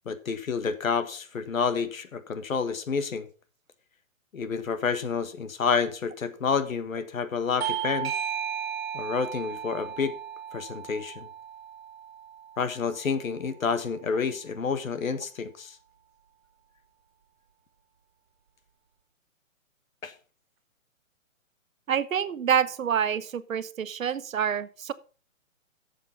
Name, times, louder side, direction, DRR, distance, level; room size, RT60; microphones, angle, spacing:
voice 1, 0.0-3.3 4.3-8.1 8.9-10.2 10.5-11.3 12.6-15.8 20.0-20.1, left 5 dB, 80° left, 11 dB, 1.7 m, -29 dB
Bell / Doorbell, 7.6-12.8, right 8 dB, 50° right, 1.8 m, -35 dB
voice 2, 21.9-24.9, right 8 dB, 75° right, 15 dB, 1.0 m, -27 dB
10.5 x 7.4 x 5.2 m, 0.36 s
hypercardioid pair, 175°, 40 cm